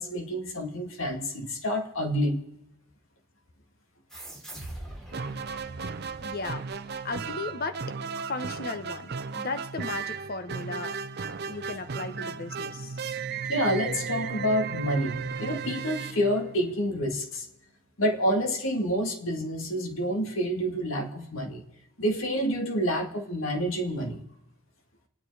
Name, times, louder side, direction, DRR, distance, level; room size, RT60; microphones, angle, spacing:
voice 1, 0.0-2.4 13.5-17.5 18.0-21.6 22.0-24.2, equal, 70° left, 4 dB, 2.1 m, -28 dB
sound 1, 4.1-7.1, right 1 dB, ahead, 2.8 m, -43 dB
sound 2, 5.1-17.0, right 5 dB, 50° right, 0.5 m, -35 dB
voice 2, 6.2-7.8 8.3-11.0 11.4-13.0, left 3 dB, 45° left, 9 dB, 1.0 m, -36 dB
27.0 x 9.6 x 4.8 m, 0.87 s
head